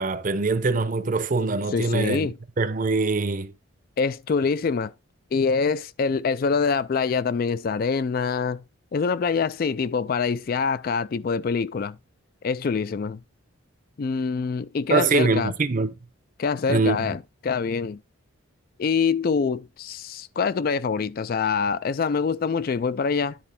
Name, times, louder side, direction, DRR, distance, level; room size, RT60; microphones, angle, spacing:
voice 1, 0.0-2.3 2.6-3.5 14.9-15.9 16.7-17.1, right 3 dB, 40° right, 0.6 m, -23 dB
voice 2, 1.7-2.4 4.0-4.9 5.3-8.6 8.9-12.0 12.4-13.2 14.0-15.5 16.4-18.0 18.8-23.4, left 5 dB, 45° left, 0.3 m, -25 dB
10.5 x 4.1 x 4.3 m
head